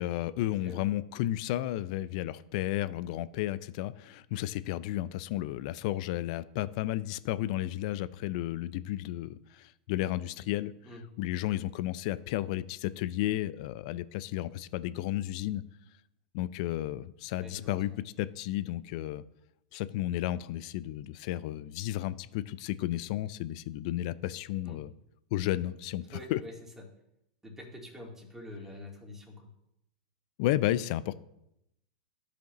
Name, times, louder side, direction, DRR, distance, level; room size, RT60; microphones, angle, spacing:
voice 1, 0.0-10.7 11.2-15.6 16.3-17.9 18.2-19.2 19.7-24.9 25.3-26.4 30.4-31.1, left 14 dB, 55° left, 17 dB, 0.4 m, -33 dB
voice 2, 17.4-18.0 24.6-24.8 26.1-26.9 27.4-29.5, left 1 dB, 10° right, -1 dB, 2.1 m, -46 dB
13.5 x 5.0 x 3.0 m, 0.82 s
hypercardioid pair, 110°, 4 cm